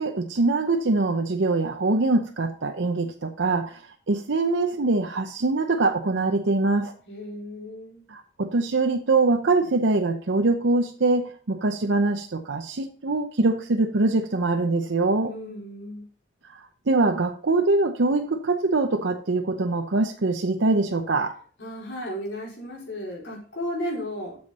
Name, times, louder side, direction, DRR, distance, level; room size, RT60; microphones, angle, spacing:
voice 1, 0.0-3.8 4.1-6.9 8.1-15.3 16.5-21.3, right 3 dB, 90° right, 5 dB, 0.8 m, -23 dB
voice 2, 7.1-8.0 15.2-16.1 21.6-24.4, equal, 85° left, -3 dB, 4.6 m, -34 dB
8.0 x 7.2 x 4.2 m, 0.44 s
head